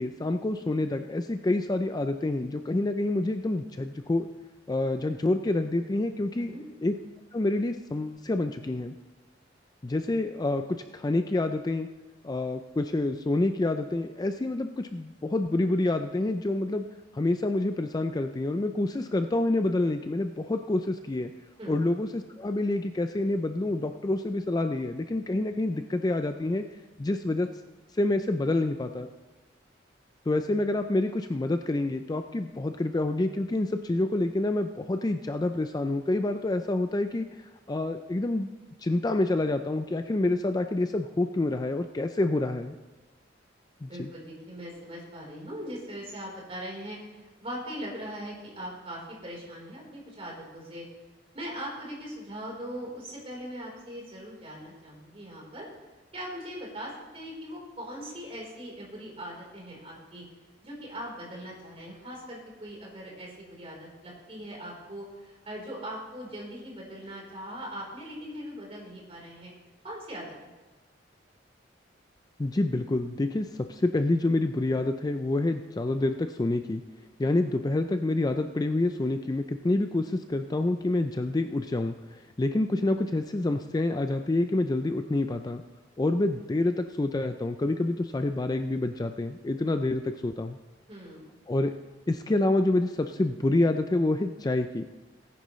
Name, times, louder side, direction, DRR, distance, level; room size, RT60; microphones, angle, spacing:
voice 1, 0.0-4.3 4.7-6.5 6.8-6.9 7.3-8.9 9.8-11.9 12.2-16.8 17.1-21.3 21.7-26.6 27.0-27.5 27.9-29.1 30.3-37.3 37.7-38.5 38.8-42.7 43.8-44.1 72.4-76.8 77.2-85.6 86.0-90.6 91.5-91.7 92.1-94.8, left 2 dB, 20° left, 7 dB, 0.4 m, -27 dB
voice 2, 43.8-50.8 51.3-55.7 56.1-60.2 60.6-69.5 69.8-70.3 77.2-77.3 90.9-91.4, equal, 35° right, -3 dB, 3.9 m, -40 dB
18.5 x 10.0 x 3.2 m, 1.2 s
head